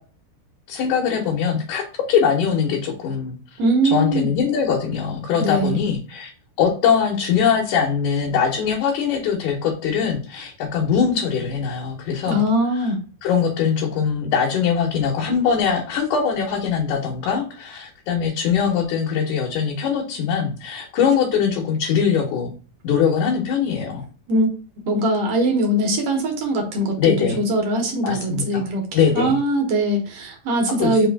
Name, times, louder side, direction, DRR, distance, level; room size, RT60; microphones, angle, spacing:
voice 1, 0.7-3.4 3.8-6.3 6.6-12.4 12.7-12.9 13.2-22.5 22.8-24.1 27.0-27.4 28.0-28.7 28.9-29.4 30.8-31.1, left 7 dB, 70° left, -2 dB, 2.3 m, -22 dB
voice 2, 3.6-4.3 5.4-5.8 12.3-13.0 24.3-24.5 24.8-28.8 29.1-31.1, right 1 dB, 60° right, 2 dB, 1.8 m, -21 dB
5.2 x 3.0 x 3.4 m, 0.38 s
omnidirectional pair, 3.8 m